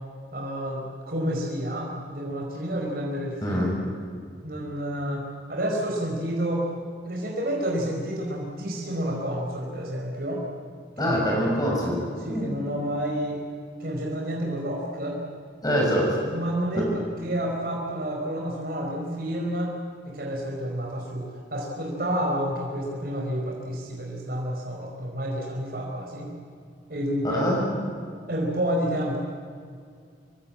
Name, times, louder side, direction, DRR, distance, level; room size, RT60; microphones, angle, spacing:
voice 1, 0.3-3.6 4.4-6.7 7.0-10.4 11.0-11.1 12.2-13.4 13.8-15.2 16.3-19.7 20.0-26.3 26.9-27.4 28.3-29.2, equal, 55° right, -1 dB, 4.7 m, -29 dB
voice 2, 3.4-3.8 11.0-12.5 15.6-16.2 16.7-16.8 27.3-27.6, equal, 20° left, -2 dB, 7.0 m, -24 dB
26.0 x 23.5 x 8.8 m, 2.2 s
head